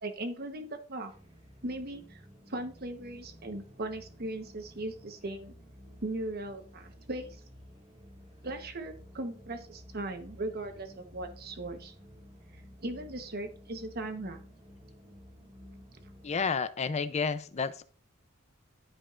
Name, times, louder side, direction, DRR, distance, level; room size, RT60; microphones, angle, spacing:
voice 1, 0.0-1.1 1.6-2.2 2.5-5.5 6.0-7.4 8.4-11.9 12.8-14.4, right 2 dB, 50° right, 1.1 m, -38 dB
sound 1, 1.1-16.5, equal, 25° right, 1.8 m, -53 dB
voice 2, 16.2-17.8, left 5 dB, 35° left, 0.5 m, -30 dB
12.0 x 5.0 x 2.5 m
head